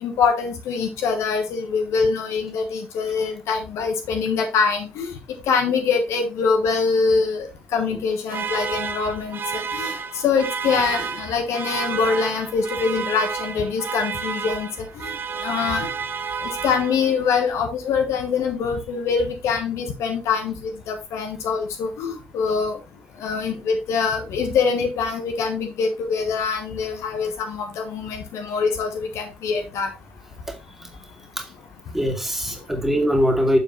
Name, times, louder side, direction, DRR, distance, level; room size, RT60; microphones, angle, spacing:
voice 1, 0.0-5.1 5.5-10.0 10.2-15.1 15.4-15.9 16.4-22.8 23.2-29.9, left 5 dB, 55° left, 1.2 m, -24 dB
sound 1, 8.3-17.3, right 6 dB, 40° right, 0.8 m, -30 dB
voice 2, 30.5-30.9 31.4-31.5 31.9-33.6, equal, 5° right, 2.2 m, -22 dB
6.8 x 6.7 x 3.0 m
figure-of-eight pair, 45°, 6 cm